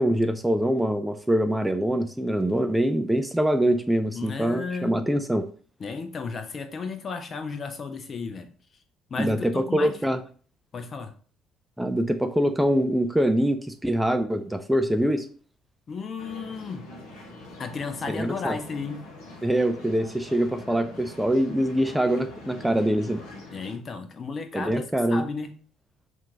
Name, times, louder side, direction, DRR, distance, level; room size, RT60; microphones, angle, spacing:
voice 1, 0.0-5.5 9.2-10.2 11.8-15.3 18.1-18.6 19.4-23.2 24.5-25.2, right 1 dB, 5° right, 8 dB, 0.4 m, -24 dB
voice 2, 4.1-4.9 5.8-8.5 9.1-9.9 10.7-11.1 15.9-16.8 17.6-19.0 23.5-24.8 25.1-25.5, left 4 dB, 40° left, 8 dB, 0.7 m, -33 dB
sound 1, 16.2-23.8, left 2 dB, 60° left, 1.1 m, -43 dB
5.8 x 2.6 x 2.8 m, 0.42 s
figure-of-eight pair, 50°, 0 cm